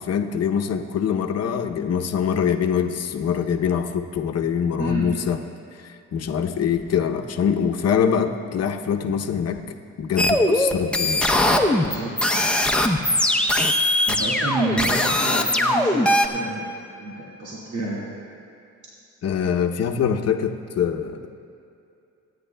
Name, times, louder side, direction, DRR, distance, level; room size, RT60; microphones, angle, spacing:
voice 1, 0.0-5.4 5.8-9.6 10.0-11.2 19.2-21.4, left 7 dB, 55° left, 5 dB, 0.8 m, -24 dB
voice 2, 4.8-5.1 11.8-12.5 14.1-16.7 17.0-18.0, right 2 dB, 70° right, -6 dB, 2.2 m, -29 dB
sound 1, 10.2-16.3, left 1 dB, 5° left, 0.7 m, -20 dB
25.0 x 9.7 x 2.3 m, 2.6 s
cardioid pair, 90°, 30 cm